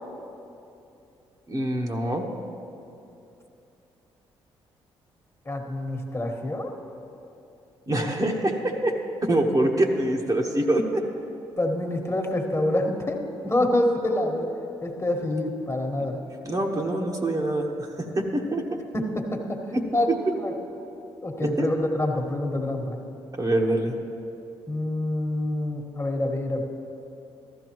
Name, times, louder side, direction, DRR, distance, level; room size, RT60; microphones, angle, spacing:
voice 1, 1.5-2.3 7.9-11.0 16.4-18.7 19.7-20.2 21.4-21.7 23.3-24.0, right 1 dB, 30° right, 1 dB, 1.2 m, -25 dB
voice 2, 5.4-6.7 11.6-14.5 14.8-16.2 18.9-20.1 20.4-20.5 21.2-23.0 24.7-26.6, left 1 dB, 25° left, 3 dB, 1.5 m, -26 dB
14.5 x 12.5 x 3.1 m, 2.8 s
hypercardioid pair, 50°, 11 cm